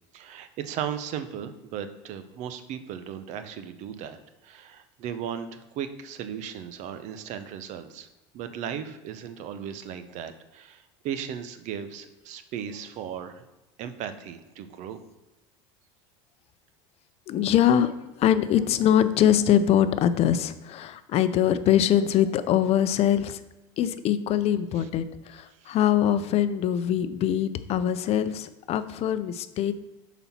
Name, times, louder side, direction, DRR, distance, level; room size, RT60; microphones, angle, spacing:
voice 1, 0.1-4.2 4.4-8.1 8.3-13.5 13.8-15.0 24.8-24.9 25.6-25.8, right 8 dB, 55° right, 10 dB, 0.8 m, -36 dB
voice 2, 17.3-23.4 23.8-29.7, left 10 dB, 45° left, 12 dB, 0.6 m, -23 dB
6.9 x 4.2 x 5.8 m, 1.1 s
supercardioid pair, 95°, 14 cm